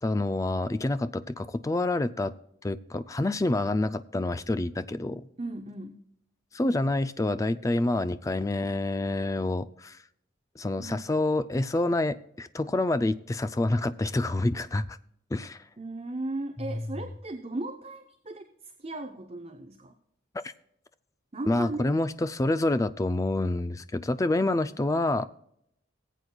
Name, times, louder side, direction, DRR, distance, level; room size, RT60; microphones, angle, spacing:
voice 1, 0.0-2.3 2.6-5.3 6.5-10.0 10.6-15.0 15.3-15.6 16.6-16.8 21.5-25.3, left 2 dB, 15° left, 13 dB, 0.3 m, -27 dB
voice 2, 5.4-6.0 10.8-11.1 15.8-19.9 21.3-21.8, right 2 dB, 30° right, 6 dB, 0.7 m, -37 dB
19.0 x 8.2 x 2.3 m, 0.73 s
head